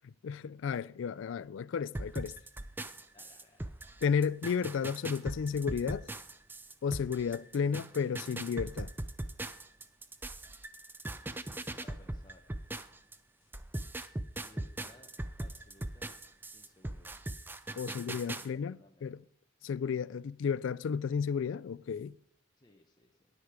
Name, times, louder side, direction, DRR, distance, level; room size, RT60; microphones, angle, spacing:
voice 1, 0.2-2.3 4.0-6.1 6.8-8.9 17.8-19.2 19.6-22.1, left 6 dB, 70° left, 0.3 m, -33 dB
sound 1, 1.9-13.2 13.5-18.5, right 1 dB, 10° right, 0.3 m, -40 dB
voice 2, 3.1-3.7 11.8-12.4 14.4-15.1 15.4-16.1 16.5-17.2 17.7-18.1 18.5-19.0 22.6-23.1, left 2 dB, 20° left, 0.8 m, -60 dB
9.8 x 9.5 x 4.9 m
head